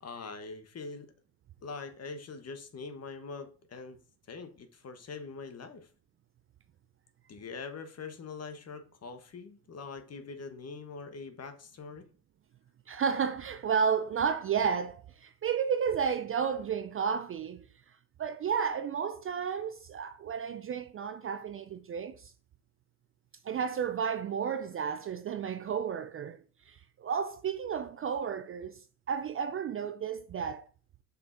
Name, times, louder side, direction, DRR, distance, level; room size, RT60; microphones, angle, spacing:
voice 1, 0.0-1.1 1.6-4.0 4.3-5.9 7.3-12.1, left 4 dB, 30° left, 1.2 m, -43 dB
voice 2, 12.9-17.6 18.2-22.3 23.4-26.4 26.7-30.7, right 7 dB, 30° right, 0.5 m, -32 dB
6.6 x 5.8 x 2.7 m
hypercardioid pair, 65°, 46 cm